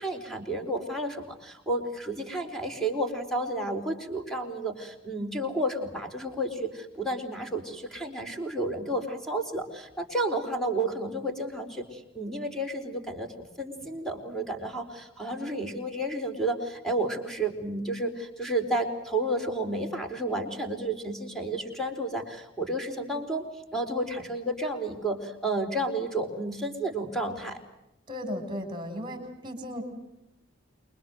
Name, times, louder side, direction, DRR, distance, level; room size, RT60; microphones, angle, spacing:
voice 1, 0.0-13.3 13.6-23.4 23.7-27.6, right 1 dB, ahead, 4 dB, 4.4 m, -31 dB
voice 2, 28.1-29.8, equal, 25° right, 7 dB, 6.1 m, -35 dB
28.5 x 23.5 x 8.0 m, 0.87 s
head